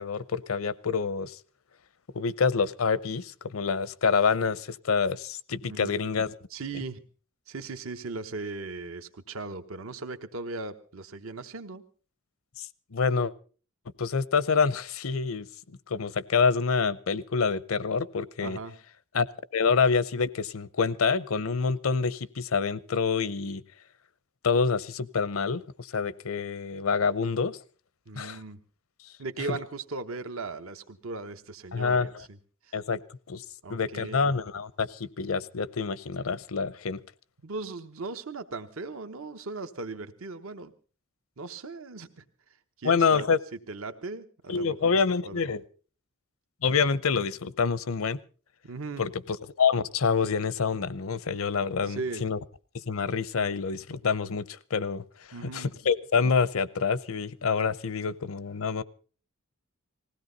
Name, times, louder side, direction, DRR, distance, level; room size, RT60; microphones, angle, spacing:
voice 1, 0.0-1.4 2.1-6.3 12.6-12.7 12.9-13.3 14.0-15.5 15.9-18.6 19.1-19.3 19.5-23.6 24.4-27.6 28.1-28.4 29.5-29.6 31.7-32.2 32.7-33.0 33.3-33.4 33.7-37.0 42.8-43.4 44.5-45.6 46.6-48.2 49.0-52.4 52.9-55.0 55.4-58.8, left 5 dB, 75° left, 19 dB, 0.7 m, -27 dB
voice 2, 6.5-7.0 7.5-11.8 18.4-18.7 28.1-28.6 29.2-32.4 32.6-32.8 33.6-34.3 37.4-40.7 41.4-42.2 42.8-43.3 43.7-45.0 45.2-45.4 48.6-49.0 51.9-52.2 55.3-55.7, right 3 dB, 70° right, 9 dB, 1.1 m, -38 dB
20.0 x 16.5 x 4.0 m, 0.38 s
head